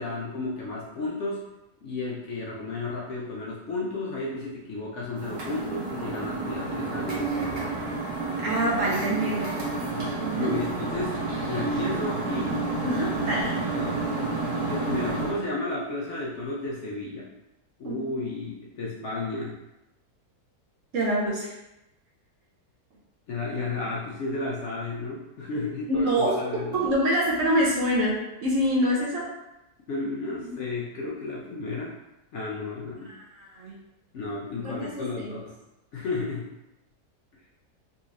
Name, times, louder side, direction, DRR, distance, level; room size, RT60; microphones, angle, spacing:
voice 1, 0.0-1.4 1.8-7.8 10.3-12.6 13.7-14.0 14.7-17.3 17.8-19.6 23.3-26.8 29.9-32.0 32.3-33.1 34.1-35.6 35.9-36.5, left 3 dB, 65° left, -5 dB, 0.8 m, -33 dB
sound 1, 5.2-15.4, right 3 dB, 90° right, 1.4 m, -30 dB
voice 2, 8.4-9.5 10.2-10.5 12.8-13.6 17.8-18.1 20.9-21.5 25.9-26.4 26.7-29.2 30.4-30.5 33.1-33.7 34.6-35.3, equal, 65° right, -3 dB, 1.0 m, -26 dB
3.8 x 3.0 x 2.5 m, 0.94 s
omnidirectional pair, 1.7 m